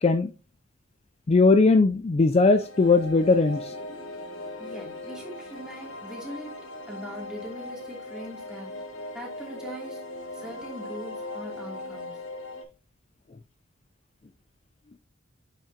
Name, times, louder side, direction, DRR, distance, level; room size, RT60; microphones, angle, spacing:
voice 1, 0.0-0.3 1.3-3.8, left 3 dB, 30° left, 0.4 m, -19 dB
sound 1, 2.5-12.6, left 2 dB, 75° left, 1.8 m, -39 dB
voice 2, 4.6-6.5 6.8-8.8 9.1-10.0 10.3-12.2, equal, 5° right, 2.6 m, -41 dB
8.6 x 5.7 x 2.8 m
head